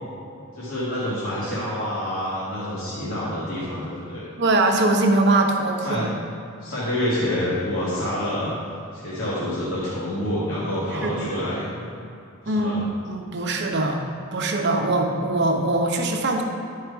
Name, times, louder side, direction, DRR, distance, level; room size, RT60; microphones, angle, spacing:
voice 1, 0.5-4.3 5.8-6.1 6.6-8.5 8.9-11.7 12.4-12.8, left 1 dB, 85° left, -10 dB, 2.1 m, -27 dB
voice 2, 4.4-6.0 11.0-11.3 12.5-12.7 13.0-14.0 14.3-16.4, right 2 dB, 55° right, 2 dB, 0.9 m, -22 dB
11.0 x 4.8 x 4.7 m, 2.7 s
head